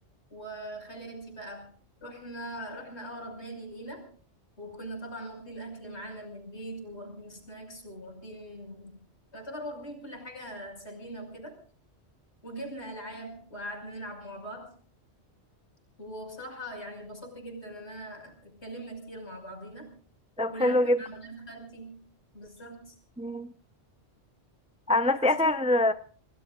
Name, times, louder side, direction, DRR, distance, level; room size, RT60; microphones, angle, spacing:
voice 1, 0.3-1.7 2.0-4.1 4.6-9.0 9.3-11.6 12.4-14.7 16.0-19.9 20.5-22.1 22.3-23.0 25.1-25.5, right 1 dB, 70° left, 4 dB, 6.4 m, -41 dB
voice 2, 20.4-21.0 23.2-23.5 24.9-25.9, left 1 dB, 5° right, 10 dB, 0.7 m, -24 dB
28.5 x 20.5 x 2.5 m, 0.43 s
omnidirectional pair, 1.2 m